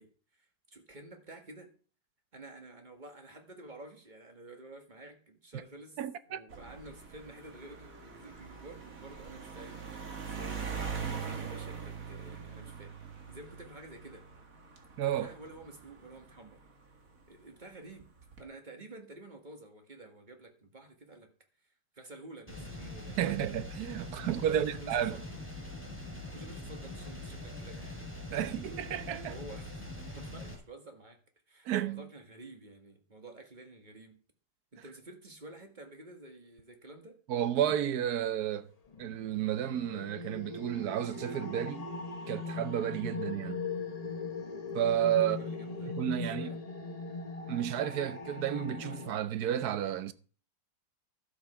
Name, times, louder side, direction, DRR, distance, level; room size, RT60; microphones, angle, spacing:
voice 1, 0.0-1.7 2.3-6.0 6.3-12.9 13.3-14.2 15.0-16.6 17.3-18.1 18.4-21.3 21.9-23.5 24.4-25.2 25.9-28.0 28.3-28.6 29.2-31.2 31.5-34.2 34.7-37.2 43.1-43.4 45.2-45.9 46.2-46.6, right 2 dB, 25° right, 1.9 m, -50 dB
voice 2, 6.0-6.4 15.0-15.3 23.2-25.2 28.3-29.3 31.6-32.1 37.3-38.7 39.0-41.9 42.3-43.6 44.7-45.4 46.0-46.6 47.5-50.1, right 10 dB, 65° right, 1.2 m, -32 dB
sound 1, 6.5-17.2 18.0-18.4, right 6 dB, 50° right, 2.2 m, -43 dB
sound 2, 22.5-30.5, left 2 dB, 5° right, 3.3 m, -43 dB
sound 3, 38.9-49.1, left 3 dB, 25° left, 0.9 m, -39 dB
12.5 x 8.1 x 5.8 m
omnidirectional pair, 2.0 m